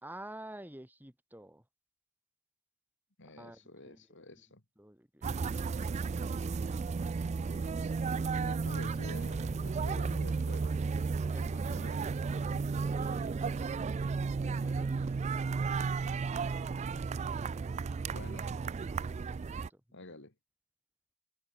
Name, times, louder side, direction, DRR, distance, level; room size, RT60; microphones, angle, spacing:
voice 1, 0.0-1.7 3.2-4.1 4.8-5.7 11.3-11.6 12.5-15.9 19.4-20.0, right 1 dB, 10° right, 3.2 m, -51 dB
voice 2, 3.2-4.6 8.3-10.8 11.4-12.1 12.5-12.7 18.1-18.5 19.9-20.4, left 2 dB, 55° left, 3.4 m, -49 dB
sound 1, 5.2-19.7, right 4 dB, 30° right, 0.3 m, -33 dB
open air
head